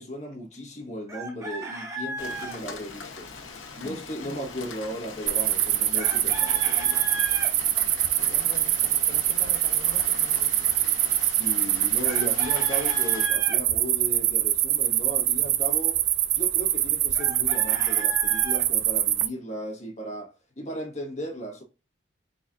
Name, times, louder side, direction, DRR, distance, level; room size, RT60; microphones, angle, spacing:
voice 1, 0.0-3.3 3.8-7.0 11.2-16.0 16.3-21.6, equal, 35° left, 1.3 m, -36 dB
Chicken rooster, 1.1-2.6 6.0-7.5 12.0-13.6 17.1-18.6, right 1 dB, 15° right, 0.8 m, -35 dB
Rain, 2.2-13.3, left 4 dB, 90° left, 1.0 m, -41 dB
voice 2, 4.2-4.5 8.2-10.5, equal, 20° left, 0.8 m, -45 dB
sound 1, 5.3-19.3, right 13 dB, 70° right, 0.4 m, -24 dB
4.2 x 4.0 x 2.5 m
head